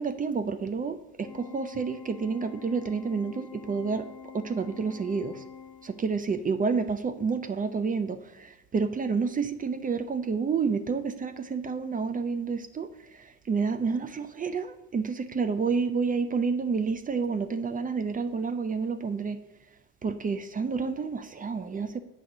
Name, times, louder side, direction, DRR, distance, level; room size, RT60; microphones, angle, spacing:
voice 1, 0.0-4.0 4.3-5.3 5.8-8.2 8.7-12.9 13.5-19.4 20.0-22.0, right 5 dB, 30° right, 9 dB, 0.4 m, -29 dB
Organ, 1.2-6.3, left 7 dB, 20° left, 0.6 m, -46 dB
7.7 x 2.8 x 5.9 m, 1.1 s
cardioid pair, 90°, 30 cm